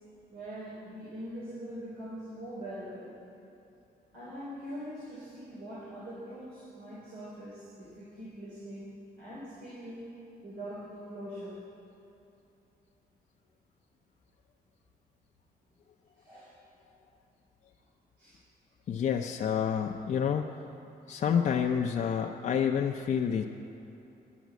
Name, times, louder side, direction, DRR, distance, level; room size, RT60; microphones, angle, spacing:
voice 1, 0.3-3.1 4.1-10.1 10.4-11.6 16.1-16.6 18.2-18.4, equal, 80° right, -7 dB, 3.0 m, -43 dB
voice 2, 18.9-20.5 21.1-23.4, left 7 dB, 50° left, 2 dB, 0.5 m, -28 dB
9.3 x 9.2 x 7.4 m, 3.0 s
cardioid pair, 135°, 16 cm